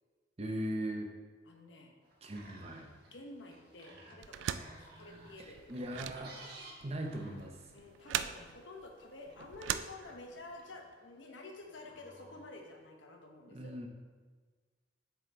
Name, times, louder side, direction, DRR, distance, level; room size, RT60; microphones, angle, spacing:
voice 1, 0.4-1.1 2.2-2.9 5.4-6.4 6.8-7.6 13.5-13.9, right 1 dB, 35° right, 3 dB, 0.7 m, -39 dB
voice 2, 1.5-1.9 3.0-5.6 7.7-13.7, left 2 dB, 90° left, 2 dB, 1.0 m, -50 dB
sound 1, 2.0-12.8, right 2 dB, 60° right, 1.4 m, -57 dB
sound 2, 4.2-10.6, right 10 dB, 90° right, 0.3 m, -41 dB
7.7 x 4.9 x 3.4 m, 1.4 s
head